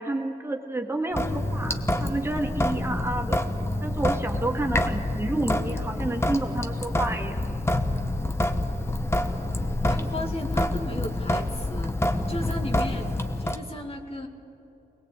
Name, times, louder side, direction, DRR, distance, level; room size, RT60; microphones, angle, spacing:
voice 1, 0.0-3.4 3.8-7.4, right 2 dB, 15° right, 3 dB, 1.7 m, -30 dB
Sink (filling or washing) / Drip, 1.1-13.6, left 1 dB, 15° left, 1.2 m, -27 dB
voice 2, 9.7-13.1 13.4-14.3, left 1 dB, 40° left, 4 dB, 2.0 m, -35 dB
22.5 x 20.5 x 8.7 m, 2.9 s
wide cardioid pair, 155°, 16 cm